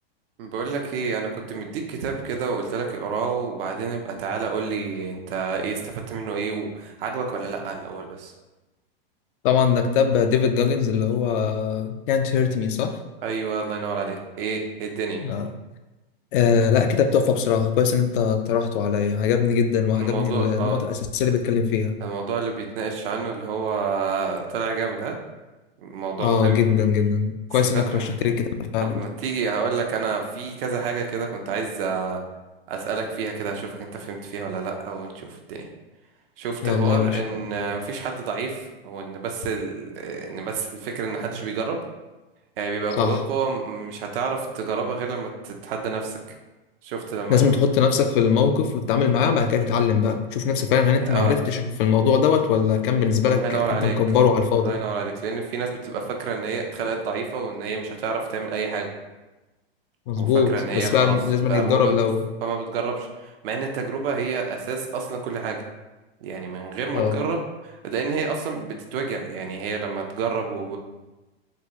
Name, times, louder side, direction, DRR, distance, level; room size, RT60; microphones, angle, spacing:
voice 1, 0.4-8.3 13.2-15.2 20.0-20.8 22.0-25.1 25.8-26.6 27.7-28.1 28.8-32.2 32.7-35.7 36.4-41.8 42.6-46.2 46.8-47.4 51.0-51.3 53.2-53.9 54.5-58.9 60.2-61.2 61.4-61.9 62.4-65.6 66.2-70.8, right 5 dB, 65° right, 2 dB, 0.7 m, -29 dB
voice 2, 9.4-13.0 15.2-15.5 16.3-22.0 26.2-28.5 28.7-29.0 36.6-37.2 43.0-43.1 47.3-54.8 60.1-62.2 66.9-67.2, left 7 dB, 60° left, 7 dB, 0.4 m, -21 dB
3.8 x 2.3 x 2.9 m, 1.1 s
hypercardioid pair, 125°, 31 cm